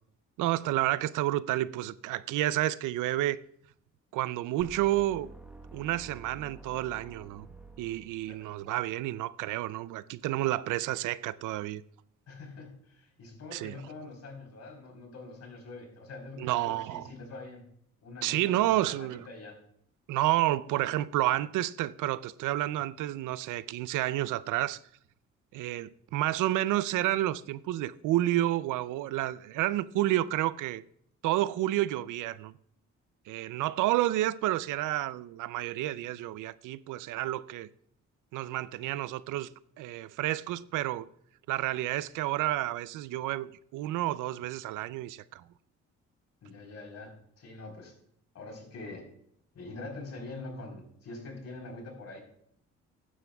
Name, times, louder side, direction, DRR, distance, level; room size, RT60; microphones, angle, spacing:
voice 1, 0.4-3.4 4.1-5.3 5.7-7.5 7.8-11.8 13.5-13.8 16.4-17.1 18.2-19.3 20.1-24.8 25.5-30.8 31.2-32.5 33.3-37.7 38.3-39.5 39.8-41.1 41.5-45.4, right 15 dB, 85° right, 0.5 m, -30 dB
sound 1, 4.6-8.6, right 2 dB, 5° right, 1.1 m, -50 dB
voice 2, 12.3-17.6 18.0-19.6 46.4-47.9 48.3-49.1 49.5-52.2, left 2 dB, 60° left, 3.8 m, -44 dB
15.0 x 9.8 x 2.3 m
cardioid pair, 90°, 30 cm